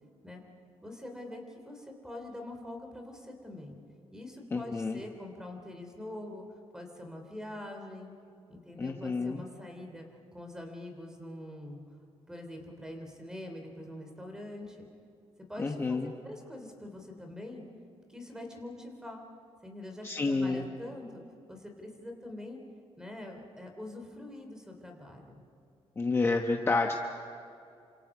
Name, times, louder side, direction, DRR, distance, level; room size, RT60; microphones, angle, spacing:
voice 1, 0.8-3.8 4.1-6.4 6.7-8.1 8.5-10.1 10.3-11.8 12.3-14.8 15.5-17.6 18.1-19.2 19.6-21.2 21.5-22.6 23.0-25.4, left 1 dB, 5° right, 3 dB, 3.2 m, -44 dB
voice 2, 4.5-5.0 8.8-9.4 15.6-16.1 20.0-20.6 26.0-27.0, left 3 dB, 25° left, 3 dB, 1.0 m, -29 dB
28.5 x 26.0 x 4.9 m, 2.7 s
wide cardioid pair, 160°, 10 cm